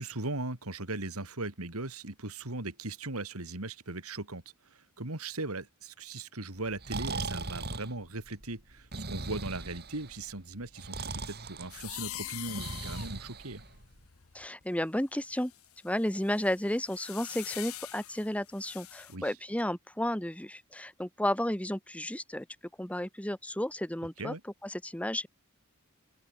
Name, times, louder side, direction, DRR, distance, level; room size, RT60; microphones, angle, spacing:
voice 1, 0.0-13.6 19.1-19.3 24.2-24.4, right 2 dB, 85° right, 3.2 m, -38 dB
Breathing, 6.8-14.0, right 3 dB, 45° right, 3.8 m, -39 dB
sound 1, 11.7-14.6 15.2-19.1, left 14 dB, 75° left, 1.0 m, -44 dB
voice 2, 14.3-15.5 15.8-22.5 22.8-24.3 24.6-25.3, left 1 dB, 5° left, 1.4 m, -32 dB
open air
head